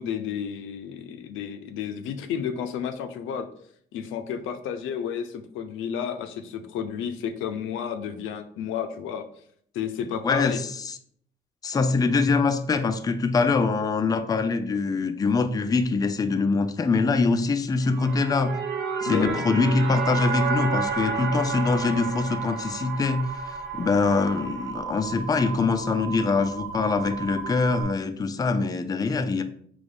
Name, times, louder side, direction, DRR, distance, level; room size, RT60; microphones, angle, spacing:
voice 1, 0.0-3.5 3.9-9.3 9.7-10.6 19.1-19.4, left 8 dB, 85° left, 8 dB, 0.5 m, -31 dB
voice 2, 10.2-11.0 11.6-18.6 19.0-29.4, left 4 dB, 20° left, 8 dB, 0.4 m, -24 dB
sound 1, 17.7-24.7, right 5 dB, 60° right, 0.8 m, -32 dB
sound 2, 19.8-27.8, right 6 dB, 85° right, 1.1 m, -36 dB
3.8 x 3.0 x 3.4 m, 0.63 s
cardioid pair, 90°, 20 cm